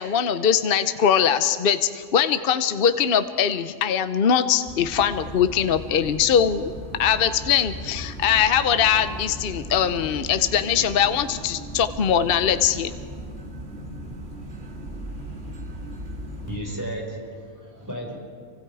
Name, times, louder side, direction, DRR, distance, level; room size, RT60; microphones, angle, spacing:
voice 1, 0.0-6.6 7.0-12.9, left 8 dB, 55° left, 10 dB, 0.9 m, -21 dB
sound 1, 4.7-16.6, right 1 dB, 55° right, 2.2 m, -37 dB
voice 2, 16.5-18.1, right 1 dB, 15° right, -2 dB, 5.1 m, -33 dB
29.0 x 25.0 x 4.8 m, 2.1 s
omnidirectional pair, 1.3 m